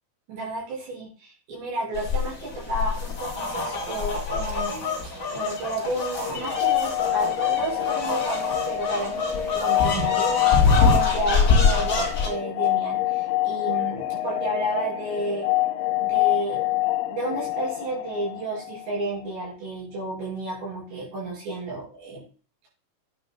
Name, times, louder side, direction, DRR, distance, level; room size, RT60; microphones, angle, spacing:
voice 1, 0.3-15.5 16.0-16.6 17.1-22.2, right 2 dB, 80° right, -4 dB, 7.9 m, -31 dB
sound 1, 1.9-12.3, left 4 dB, 25° left, 2.7 m, -25 dB
sound 2, 6.2-19.0, left 15 dB, 90° left, 3.1 m, -26 dB
10.5 x 9.8 x 2.2 m, 0.37 s
omnidirectional pair, 5.0 m